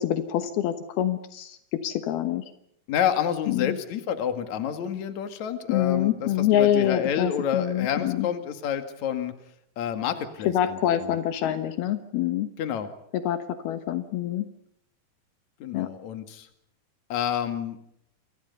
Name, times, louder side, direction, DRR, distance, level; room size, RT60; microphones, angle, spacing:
voice 1, 0.0-2.4 3.5-3.8 5.7-8.3 10.5-12.5 13.1-14.5 15.7-15.9, left 11 dB, 80° left, 9 dB, 3.1 m, -26 dB
voice 2, 2.9-9.3 9.8-11.1 12.6-12.9 15.6-16.5 17.1-17.8, left 9 dB, 50° left, 8 dB, 3.1 m, -29 dB
28.5 x 25.5 x 5.6 m, 0.72 s
omnidirectional pair, 4.5 m